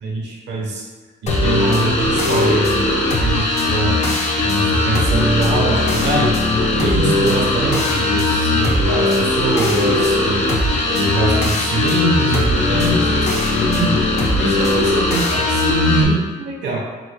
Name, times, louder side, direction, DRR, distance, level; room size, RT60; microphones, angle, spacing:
voice 1, 0.0-0.8 1.2-2.9 3.2-4.0 4.4-6.3 6.7-10.5 10.8-14.0 14.4-16.8, right 2 dB, 75° right, -1 dB, 1.0 m, -22 dB
sound 1, 1.3-16.0, left 2 dB, 40° left, 0.9 m, -18 dB
4.6 x 4.4 x 2.2 m, 1.4 s
cardioid pair, 150°, 18 cm